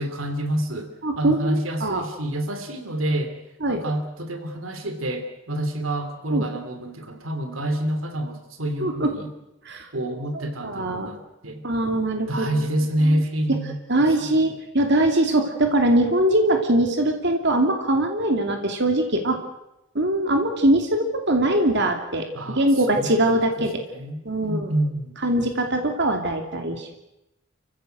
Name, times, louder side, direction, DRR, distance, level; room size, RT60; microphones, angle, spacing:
voice 1, 0.0-3.4 3.7-9.3 9.9-11.6 12.3-14.5 22.3-23.2 23.6-23.7 23.9-25.2, right 1 dB, 80° right, 7 dB, 2.9 m, -28 dB
voice 2, 1.0-2.0 3.6-3.8 6.3-6.4 8.8-9.1 9.7-9.9 10.3-11.1 11.6-12.6 13.0-13.1 13.9-19.4 19.9-23.8 24.2-24.7 25.2-26.9, right 1 dB, 60° right, 4 dB, 2.8 m, -22 dB
29.5 x 16.0 x 8.0 m, 0.91 s
head